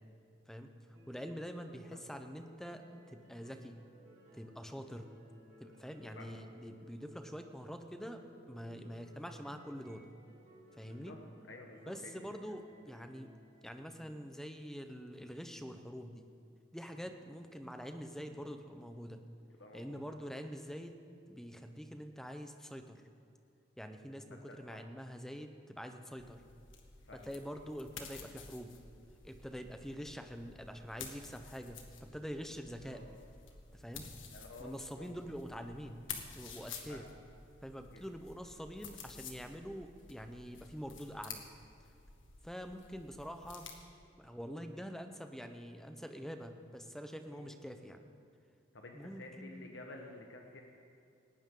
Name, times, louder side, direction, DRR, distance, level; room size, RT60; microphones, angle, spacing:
sound 1, 0.9-14.2, equal, 45° right, 3.7 m, -60 dB
voice 1, 1.1-3.8 4.3-5.0 5.6-8.2 8.5-10.0 10.8-11.2 11.9-13.3 13.6-16.3 16.7-19.2 19.7-20.9 21.3-23.0 23.8-26.4 27.1-28.7 29.2-33.0 33.7-34.0 34.6-36.0 36.3-37.1 37.6-41.4 42.4-43.7 44.2-48.0 48.9-49.7, equal, ahead, 6 dB, 0.8 m, -45 dB
voice 2, 10.8-11.2 11.5-12.1 16.9-17.1 19.6-20.1 24.3-24.8 27.1-27.3 32.8-33.1 34.3-35.1 36.9-37.0 37.9-38.0 47.3-47.4 48.7-50.6, left 2 dB, 70° left, 1 dB, 1.3 m, -51 dB
sound 2, 26.2-43.7, left 5 dB, 90° left, 1.8 m, -51 dB
19.0 x 18.5 x 3.9 m, 2.6 s
head